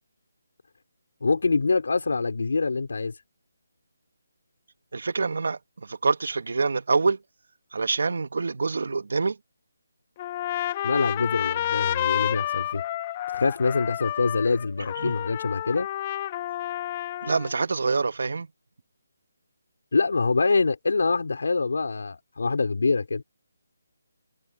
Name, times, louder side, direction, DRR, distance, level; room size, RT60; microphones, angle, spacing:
voice 1, 1.2-3.2 10.8-12.8 13.3-15.9 19.9-23.2, left 4 dB, 70° left, 4.2 m, -25 dB
voice 2, 4.9-7.2 7.7-9.4 15.0-15.1 17.2-18.5, right 4 dB, 70° right, 1.9 m, -26 dB
Trumpet, 10.2-17.5, left 13 dB, 25° left, 0.8 m, -30 dB
figure-of-eight pair, 165°, 0 cm